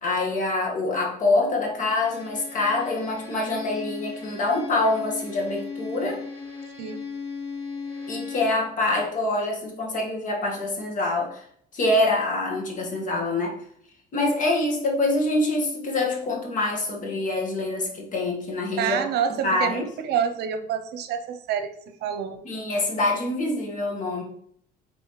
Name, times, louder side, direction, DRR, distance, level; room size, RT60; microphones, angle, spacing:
voice 1, 0.0-6.2 8.1-11.5 11.7-13.5 14.1-19.0 19.4-19.9 22.4-24.2, left 2 dB, 50° left, 0 dB, 1.7 m, -25 dB
Bowed string instrument, 1.7-8.7, left 5 dB, 70° left, 2.4 m, -37 dB
voice 2, 18.8-21.7 22.0-22.4, right 8 dB, 75° right, 7 dB, 0.7 m, -27 dB
8.4 x 4.0 x 3.2 m, 0.67 s
cardioid pair, 110°, 17 cm